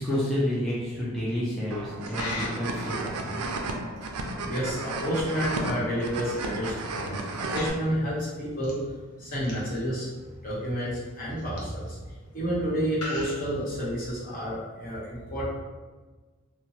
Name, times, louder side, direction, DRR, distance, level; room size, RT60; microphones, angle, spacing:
voice 1, 0.0-3.4, left 1 dB, 5° left, -8 dB, 0.4 m, -30 dB
sound 1, 1.7-7.7, right 2 dB, 80° right, 0.4 m, -33 dB
Coin (dropping), 1.9-14.1, left 2 dB, 90° left, 0.8 m, -44 dB
voice 2, 4.4-8.8 9.2-10.1 10.4-12.0 12.3-15.5, equal, 40° left, -7 dB, 1.0 m, -30 dB
2.9 x 2.1 x 2.9 m, 1.3 s
head